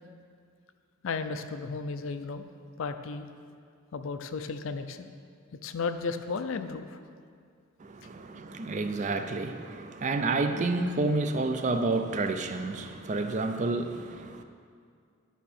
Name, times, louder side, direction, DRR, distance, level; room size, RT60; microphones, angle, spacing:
voice 1, 1.0-3.3 3.9-5.1 5.6-7.0, left 4 dB, 65° left, 9 dB, 0.4 m, -34 dB
voice 2, 7.8-14.4, right 3 dB, 35° right, 8 dB, 0.4 m, -30 dB
11.5 x 5.6 x 4.2 m, 2.2 s
head